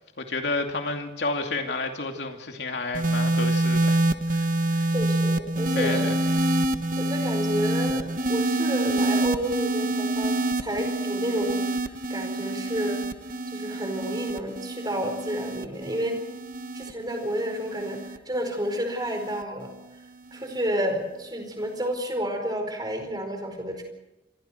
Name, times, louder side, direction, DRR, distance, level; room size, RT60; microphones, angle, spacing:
voice 1, 0.2-4.0 4.3-4.9 5.7-6.1, left 3 dB, 75° left, 3 dB, 2.7 m, -31 dB
sound 1, 2.9-19.4 20.3-20.7, right 1 dB, 50° right, 1.2 m, -27 dB
voice 2, 4.9-6.2 7.0-13.0 13.5-16.2 16.7-19.7 20.3-23.8, equal, 25° right, 4 dB, 4.8 m, -30 dB
27.5 x 25.5 x 4.6 m, 0.95 s
head